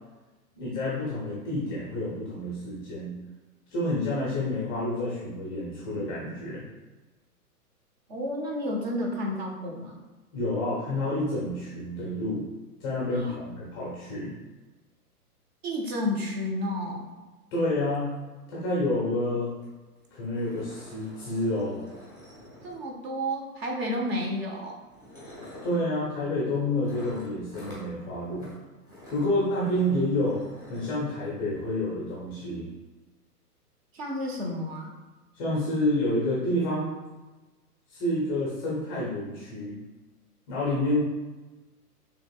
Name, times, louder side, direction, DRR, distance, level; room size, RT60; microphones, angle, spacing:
voice 1, 0.5-3.2 3.7-6.7 10.3-12.5 12.8-14.3 17.5-18.2 18.5-19.6 20.2-21.8 25.6-28.5 29.1-30.4 30.7-32.7 35.4-37.0 37.9-39.8 40.5-41.0, left 1 dB, 15° left, -6 dB, 0.5 m, -29 dB
voice 2, 8.1-10.0 13.1-13.4 15.6-17.1 22.6-24.8 33.9-34.9, left 1 dB, 40° right, 0 dB, 1.0 m, -31 dB
sound 1, 19.6-19.7 20.0-20.1 20.3-23.1 24.1-24.3 24.9-25.8 26.8-27.9 28.3-28.5 28.8-31.0, left 1 dB, 10° right, 1.2 m, -48 dB
6.4 x 2.9 x 2.4 m, 1.2 s
figure-of-eight pair, 115°, 47 cm